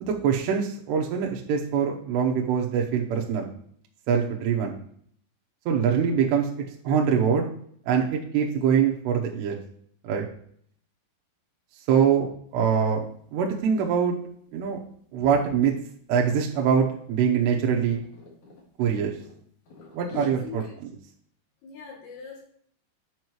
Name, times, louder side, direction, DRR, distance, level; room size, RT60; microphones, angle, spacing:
voice 1, 0.0-3.5 4.1-4.8 5.7-6.5 6.8-7.5 7.9-9.6 10.0-10.3 11.9-12.3 12.5-13.1 13.3-14.2 14.5-14.8 15.1-15.7 16.1-18.0 18.8-19.1 19.9-20.6, right 7 dB, 80° right, 0 dB, 2.8 m, -23 dB
sound 1, 12.5-12.8 13.2-13.4 13.7-15.6 16.3-16.6 16.9-18.7 19.2-20.3, left 3 dB, 50° left, 1.9 m, -46 dB
voice 2, 20.4-20.7 21.6-22.4, left 5 dB, 70° left, -6 dB, 4.7 m, -41 dB
9.5 x 5.4 x 3.1 m, 0.62 s
omnidirectional pair, 5.1 m